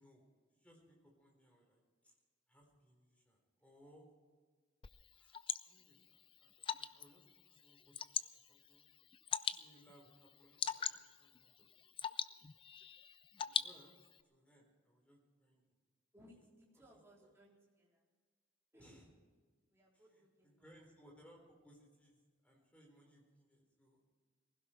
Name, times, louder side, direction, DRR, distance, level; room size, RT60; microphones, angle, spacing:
voice 1, 0.0-2.2 2.5-4.1 5.1-8.0 8.3-8.9 9.5-11.7 12.0-12.1 13.4-13.9 14.2-15.8 16.9-17.3 18.8-19.1 19.9-24.0, equal, 5° left, 0 dB, 4.1 m, -66 dB
Water / Drip, 4.8-14.2, left 8 dB, 25° left, 0.5 m, -43 dB
voice 2, 16.1-18.0 18.7-19.0 19.7-20.8, equal, 15° right, -5 dB, 3.9 m, -65 dB
19.5 x 16.5 x 4.5 m, 1.5 s
head